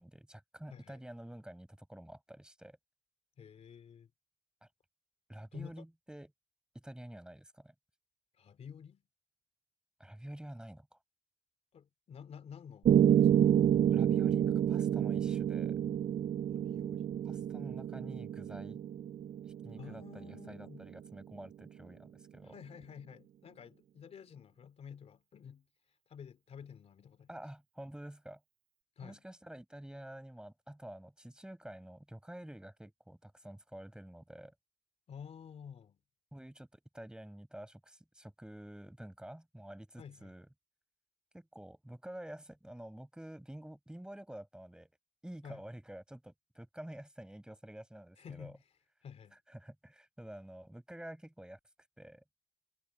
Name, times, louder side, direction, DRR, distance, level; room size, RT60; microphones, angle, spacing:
voice 1, 0.0-2.8 4.6-4.7 5.3-6.3 6.7-7.7 10.0-11.0 13.9-15.8 17.2-18.8 19.5-22.5 27.3-28.4 29.0-34.5 36.3-40.5 41.3-44.9 45.2-48.5 49.5-51.6 52.0-52.2, right 1 dB, 5° right, 7.5 m, -49 dB
voice 2, 0.7-1.0 3.4-4.1 5.5-5.8 8.4-9.0 11.7-13.5 16.5-17.1 19.8-20.9 22.4-27.3 29.0-29.2 35.1-36.0 40.0-40.4 45.4-45.6 48.2-48.6 49.0-49.4, left 7 dB, 70° left, 2.9 m, -51 dB
Piano, 12.8-20.9, right 10 dB, 70° right, 0.5 m, -29 dB
cardioid pair, 70°, 11 cm